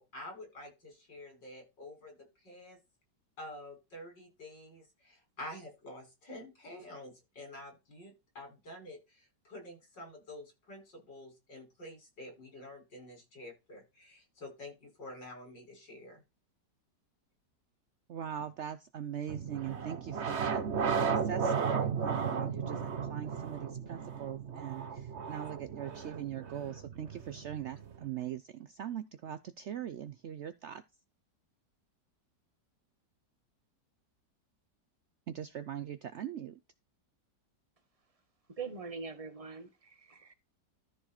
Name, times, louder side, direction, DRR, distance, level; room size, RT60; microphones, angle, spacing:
voice 1, 0.0-2.8 3.4-16.2, left 1 dB, 85° left, 6.2 m, -48 dB
voice 2, 18.1-30.8 35.3-36.6, right 9 dB, 85° right, 0.6 m, -41 dB
sound 1, 19.3-28.0, right 6 dB, 45° right, 1.2 m, -35 dB
voice 3, 38.6-40.3, right 5 dB, 20° right, 1.3 m, -43 dB
13.5 x 4.7 x 4.3 m
omnidirectional pair, 1.9 m